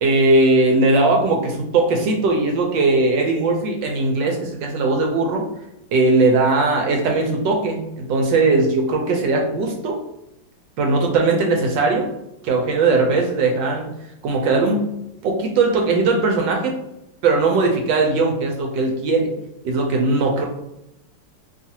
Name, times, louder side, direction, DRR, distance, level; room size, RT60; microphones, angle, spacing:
voice 1, 0.0-5.4 5.9-10.0 10.8-12.1 12.4-13.9 14.2-14.8 15.2-16.7 17.2-19.3 19.6-20.5, right 3 dB, 75° right, 1 dB, 1.2 m, -19 dB
3.1 x 2.4 x 2.7 m, 0.85 s
omnidirectional pair, 2.2 m